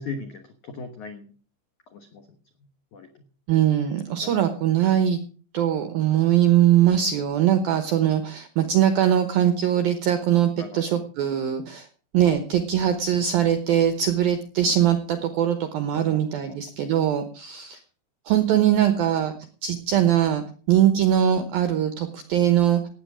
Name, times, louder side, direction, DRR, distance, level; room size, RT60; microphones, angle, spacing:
voice 1, 0.0-1.3 1.9-2.3 2.9-3.2 4.2-4.4 6.8-7.0 10.6-11.0 15.9-16.6, left 4 dB, 75° left, 6 dB, 1.7 m, -39 dB
voice 2, 3.5-5.2 5.5-11.9 12.1-17.8 18.3-19.3 19.6-22.8, right 10 dB, 80° right, 9 dB, 2.1 m, -21 dB
17.0 x 9.1 x 6.2 m, 0.42 s
omnidirectional pair, 5.7 m